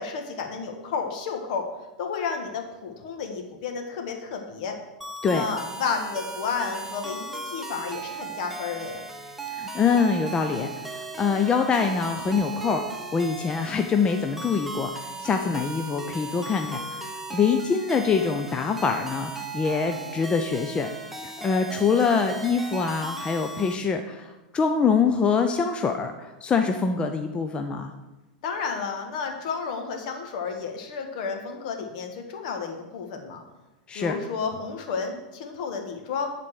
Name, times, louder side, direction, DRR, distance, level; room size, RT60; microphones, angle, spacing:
voice 1, 0.0-1.7 2.0-4.8 5.3-9.0 28.4-33.4 33.9-36.3, left 5 dB, 60° left, 4 dB, 1.6 m, -31 dB
sound 1, 5.0-23.8, right 3 dB, 5° right, 1.0 m, -37 dB
voice 2, 9.5-20.9 21.2-27.9 33.9-34.2, left 5 dB, 20° left, 5 dB, 0.6 m, -25 dB
11.0 x 4.2 x 6.4 m, 1.1 s
hypercardioid pair, 105°, 5 cm